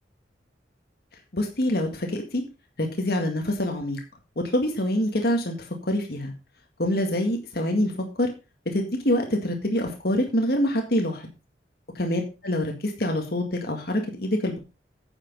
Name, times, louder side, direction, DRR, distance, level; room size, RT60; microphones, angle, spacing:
voice 1, 1.3-2.4 2.8-4.0 4.5-5.6 5.8-6.3 6.8-7.9 8.2-8.3 8.7-11.2 12.0-14.6, left 1 dB, 60° left, 3 dB, 1.9 m, -25 dB
9.4 x 7.3 x 5.2 m, 0.30 s
head